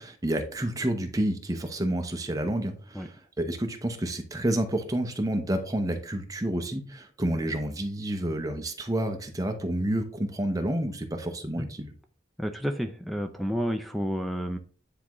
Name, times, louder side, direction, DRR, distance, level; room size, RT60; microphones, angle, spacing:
voice 1, 0.0-11.9, right 1 dB, 20° right, 5 dB, 0.8 m, -29 dB
voice 2, 12.4-14.6, equal, ahead, 7 dB, 0.4 m, -30 dB
9.7 x 3.6 x 3.0 m, 0.42 s
head